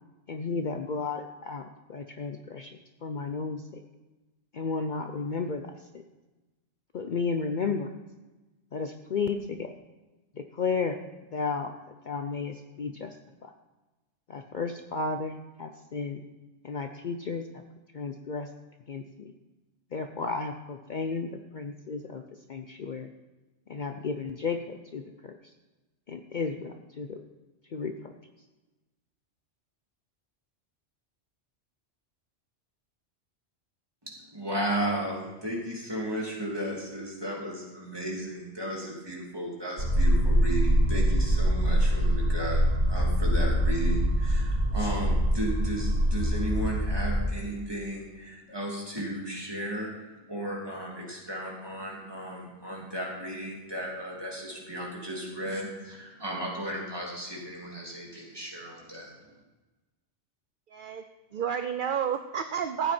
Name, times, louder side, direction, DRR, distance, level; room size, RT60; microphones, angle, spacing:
voice 1, 0.3-2.7 3.0-3.8 4.5-6.0 6.9-7.9 8.7-9.7 10.4-11.0 11.3-11.7 12.1-13.1 13.4-13.5 14.3-16.2 16.6-17.5 17.9-18.5 18.9-19.3 19.9-22.2 22.5-23.1 23.7-25.4 26.1-27.2 27.7-28.1, left 4 dB, 50° left, 6 dB, 0.7 m, -33 dB
voice 2, 34.1-59.1, right 1 dB, 20° right, -3 dB, 3.0 m, -35 dB
sound 1, 39.8-47.2, equal, 70° right, 2.5 m, -24 dB
voice 3, 60.7-61.0 61.3-62.9, right 8 dB, 55° right, 8 dB, 0.7 m, -30 dB
14.5 x 9.1 x 4.3 m, 1.1 s
omnidirectional pair, 1.2 m